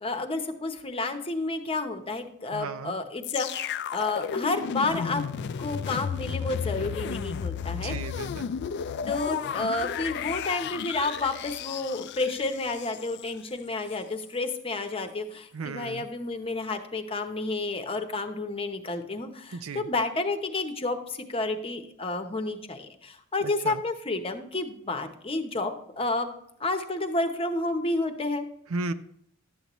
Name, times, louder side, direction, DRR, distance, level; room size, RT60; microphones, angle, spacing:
voice 1, 0.0-5.2 5.6-7.9 9.1-26.3 26.6-28.5, left 2 dB, 25° left, 7 dB, 0.8 m, -30 dB
voice 2, 2.5-2.9 7.7-8.5 15.5-16.1 19.5-19.9 23.4-23.8 28.7-28.9, right 3 dB, 80° right, 10 dB, 0.6 m, -35 dB
sound 1, 3.2-13.3 13.9-14.0, left 7 dB, 55° left, 0.3 m, -33 dB
11.5 x 8.2 x 3.0 m, 0.71 s
head